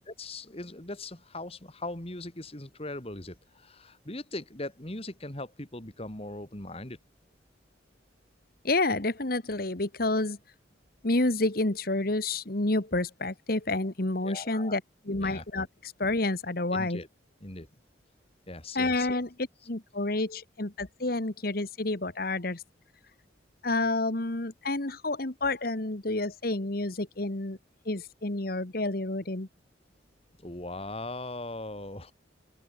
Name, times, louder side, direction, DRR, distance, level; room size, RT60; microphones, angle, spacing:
voice 1, 0.1-7.0 14.2-14.8 15.2-15.4 16.7-17.1 17.4-17.7 18.5-19.2 30.4-32.1, left 2 dB, 30° left, 2.6 m, -39 dB
voice 2, 8.6-10.4 11.0-17.0 18.7-19.3 19.7-22.6 23.6-27.6 27.8-29.5, left 2 dB, 50° left, 1.7 m, -29 dB
open air
head